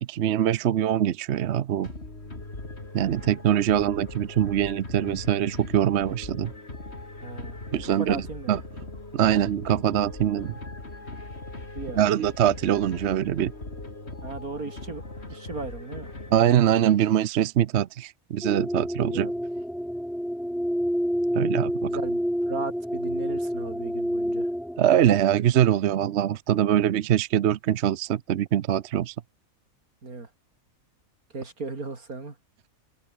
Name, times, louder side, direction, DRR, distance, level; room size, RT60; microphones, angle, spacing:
voice 1, 0.0-1.9 2.9-6.5 7.7-8.6 9.1-10.5 12.0-13.5 16.3-19.3 21.3-21.9 24.8-29.1, right 10 dB, 60° right, 0.9 m, -23 dB
sound 1, 1.8-16.9, left 2 dB, 45° left, 4.4 m, -40 dB
voice 2, 7.2-7.6 8.0-8.6 11.7-12.1 14.2-15.0 15.3-16.1 19.1-19.3 21.9-24.5 30.0-30.3 31.3-32.4, right 3 dB, 75° right, 3.9 m, -36 dB
sound 2, 18.4-24.8, equal, ahead, 2.2 m, -28 dB
open air
omnidirectional pair, 1.5 m